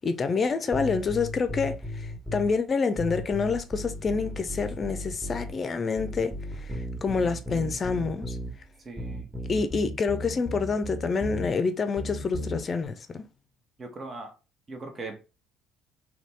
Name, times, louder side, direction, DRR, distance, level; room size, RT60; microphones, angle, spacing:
voice 1, 0.0-8.4 9.5-13.3, left 4 dB, 35° left, 0.6 m, -27 dB
sound 1, 0.7-2.5 3.0-5.6 6.0-8.5 9.0-11.5 12.0-12.6, left 1 dB, 15° right, 1.3 m, -35 dB
voice 2, 8.8-9.3 13.8-14.3 14.7-15.2, right 3 dB, 35° right, 1.0 m, -39 dB
4.1 x 3.0 x 3.3 m
figure-of-eight pair, 55°, 0 cm